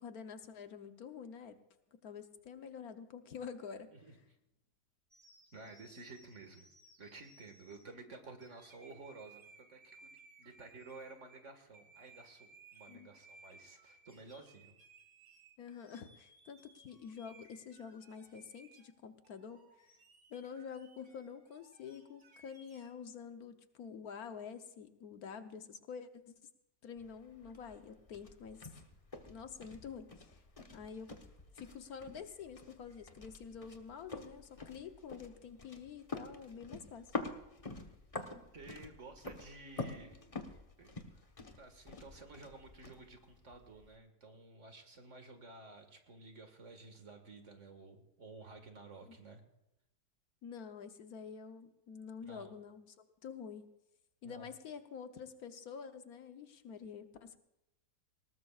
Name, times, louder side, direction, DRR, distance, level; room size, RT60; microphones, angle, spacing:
voice 1, 0.0-1.6 1.9-3.9 12.9-13.1 15.6-19.6 20.3-26.3 26.8-28.7 29.2-30.4 30.7-31.1 31.5-37.1 50.4-52.9 53.2-53.7 54.2-57.4, left 6 dB, 70° left, 8 dB, 1.4 m, -48 dB
sound 1, 5.1-7.8 8.4-11.4 11.7-18.9 19.2-22.9, right 3 dB, 35° right, 2.2 m, -62 dB
voice 2, 5.5-6.7 7.0-14.7 38.5-40.4 40.8-41.0 41.6-49.4 52.2-52.5 54.2-54.5, right 3 dB, 50° right, 5 dB, 2.1 m, -53 dB
sound 2, 27.0-44.0, left 3 dB, 25° left, 1.1 m, -48 dB
20.0 x 18.5 x 2.4 m, 0.91 s
omnidirectional pair, 1.7 m